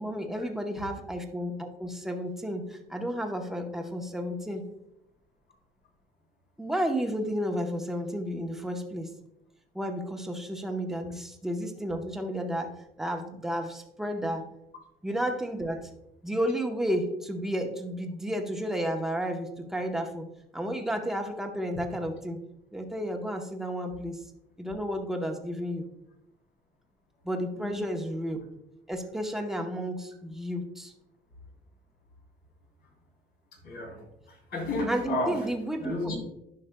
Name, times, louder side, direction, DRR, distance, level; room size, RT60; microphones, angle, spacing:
voice 1, 0.0-4.6 6.6-9.1 9.7-12.7 13.0-14.4 15.0-15.9 16.2-20.3 20.5-22.4 22.7-24.2 24.6-25.9 27.2-28.4 28.9-30.9 34.9-35.9, equal, ahead, 2 dB, 0.9 m, -32 dB
voice 2, 33.6-35.4 35.8-36.2, left 2 dB, 70° left, 1 dB, 2.6 m, -32 dB
11.0 x 5.7 x 2.2 m, 0.84 s
cardioid pair, 110°, 17 cm